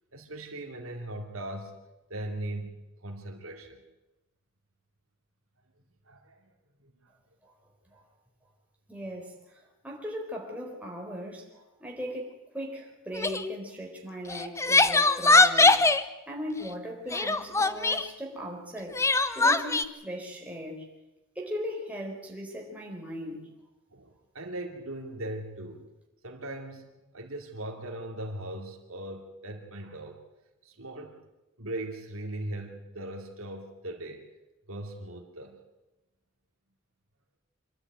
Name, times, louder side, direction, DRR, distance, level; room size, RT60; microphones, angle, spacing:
voice 1, 0.1-1.8 2.1-2.7 3.0-3.8 6.1-6.3 6.8-6.9 23.9-25.8 26.2-26.9 27.1-30.2 30.6-31.2 31.6-34.3 34.7-35.6, right 1 dB, 80° right, 3 dB, 2.8 m, -39 dB
voice 2, 8.9-16.0 16.3-19.0 19.3-20.9 21.3-23.5, equal, 5° right, -1 dB, 4.4 m, -38 dB
Crying sobbing, 13.2-13.4 14.3-16.0 17.1-18.1 18.9-19.8, left 3 dB, 15° left, 0.7 m, -21 dB
25.5 x 12.5 x 9.2 m, 1.0 s
head